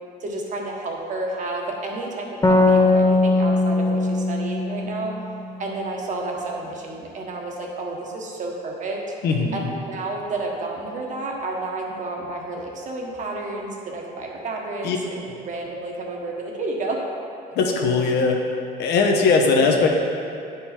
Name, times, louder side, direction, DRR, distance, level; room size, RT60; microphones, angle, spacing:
voice 1, 0.2-5.1 5.6-9.0 9.5-9.6 9.9-17.0, right 2 dB, 45° right, -1 dB, 1.4 m, -31 dB
sound 1, 2.4-5.9, left 2 dB, 20° left, 0.7 m, -20 dB
voice 2, 9.2-9.7 14.8-15.0 17.5-18.4 18.8-19.9, left 4 dB, 80° left, 1 dB, 1.1 m, -19 dB
9.5 x 5.5 x 4.4 m, 2.6 s
cardioid pair, 110°, 17 cm